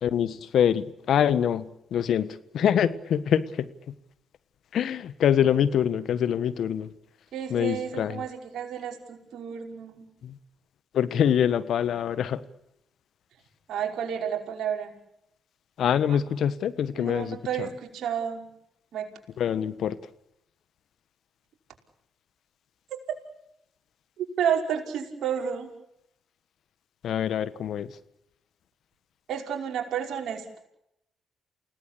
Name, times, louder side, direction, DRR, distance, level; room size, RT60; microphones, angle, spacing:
voice 1, 0.0-3.7 4.7-6.9 7.5-8.2 10.2-10.3 10.9-12.4 15.8-17.7 19.4-20.0 27.0-27.9, left 9 dB, 70° left, 14 dB, 1.4 m, -25 dB
voice 2, 7.3-10.0 13.7-14.9 16.9-18.5 18.9-19.1 24.2-25.7 29.3-30.6, right 8 dB, 70° right, 1 dB, 5.4 m, -31 dB
29.0 x 18.0 x 8.5 m, 0.80 s
hypercardioid pair, 45°, 0 cm